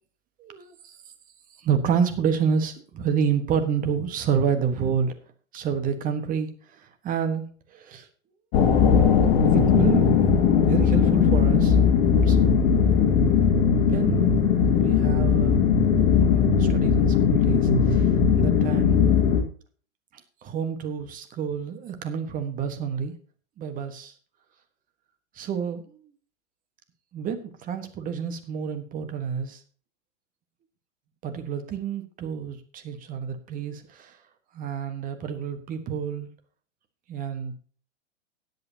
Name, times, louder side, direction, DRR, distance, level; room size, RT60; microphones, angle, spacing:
voice 1, 0.4-1.0 1.6-5.1 5.5-6.5 7.0-8.1 9.5-11.8 12.3-12.6 13.9-14.4 14.7-15.6 16.2-19.1 20.4-23.1 23.6-24.1 25.3-25.9 27.1-29.6 31.2-34.2 34.5-36.3 37.1-37.5, right 7 dB, 25° right, 8 dB, 1.5 m, -29 dB
sound 1, 8.5-19.4, left 7 dB, 40° left, 2.1 m, -19 dB
18.0 x 8.1 x 2.9 m, 0.43 s
figure-of-eight pair, 105°, 36 cm